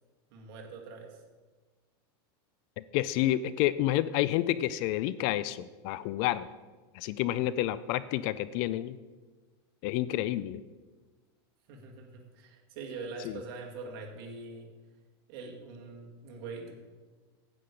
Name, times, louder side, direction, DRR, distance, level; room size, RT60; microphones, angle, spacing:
voice 1, 0.3-1.2 11.7-14.7 15.3-16.7, right 4 dB, 55° right, 1 dB, 2.1 m, -43 dB
voice 2, 2.9-6.5 6.9-9.0 9.8-10.6, left 14 dB, 45° left, 16 dB, 0.3 m, -29 dB
9.6 x 8.4 x 5.1 m, 1.3 s
supercardioid pair, 150°, 13 cm